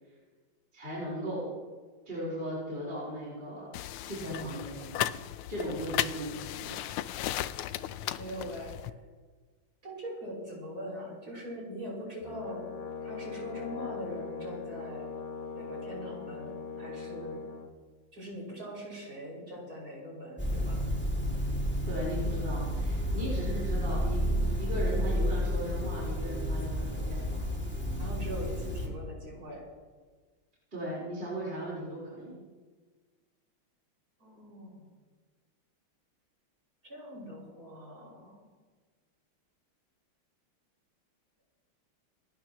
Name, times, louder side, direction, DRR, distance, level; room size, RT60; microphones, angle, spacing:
voice 1, 0.7-1.5 2.1-3.7 4.0-5.0 5.5-6.8 21.9-27.4 30.7-32.4, equal, 25° right, -7 dB, 4.5 m, -37 dB
sound 1, 3.7-8.9, left 13 dB, 90° left, 1.5 m, -35 dB
voice 2, 8.2-9.0 9.8-12.6 13.0-15.1 15.5-17.4 18.1-20.8 28.0-29.6 34.2-34.9 36.8-38.4, equal, 40° right, -4 dB, 6.2 m, -42 dB
Brass instrument, 12.2-17.7, left 5 dB, 35° left, 0.6 m, -40 dB
sound 2, 20.4-28.9, equal, 5° left, 2.2 m, -31 dB
27.0 x 12.5 x 3.0 m, 1.4 s
omnidirectional pair, 2.3 m